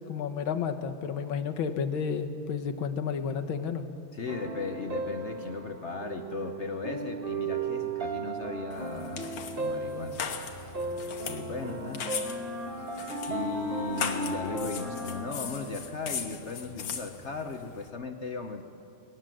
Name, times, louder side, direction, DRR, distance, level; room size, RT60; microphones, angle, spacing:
voice 1, 0.1-3.9, left 6 dB, 85° left, 7 dB, 1.9 m, -31 dB
voice 2, 4.1-9.2 9.6-10.8 11.3-12.1 12.8-12.9 13.3-18.6, left 4 dB, 50° left, 6 dB, 0.9 m, -37 dB
sound 1, 4.3-15.3, right 4 dB, 30° right, 1.7 m, -36 dB
sound 2, 8.7-17.9, left 6 dB, 70° left, 1.9 m, -39 dB
Wind instrument woodwind instrument, 10.8-16.6, equal, 80° right, 8.7 m, -39 dB
19.5 x 18.5 x 7.6 m, 2.5 s
omnidirectional pair, 2.2 m